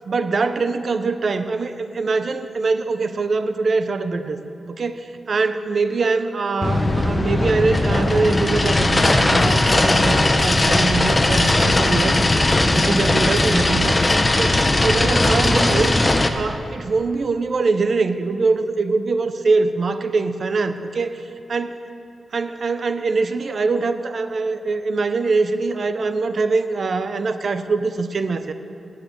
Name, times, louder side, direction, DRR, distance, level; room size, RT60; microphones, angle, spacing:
voice 1, 0.1-4.4 4.7-12.2 12.7-15.9 16.3-21.2 21.5-21.8 22.3-28.5, right 4 dB, 45° right, 10 dB, 0.5 m, -23 dB
sound 1, 6.6-16.3, left 2 dB, 20° left, 0.6 m, -18 dB
9.9 x 9.0 x 7.4 m, 2.7 s
wide cardioid pair, 170°, 0 cm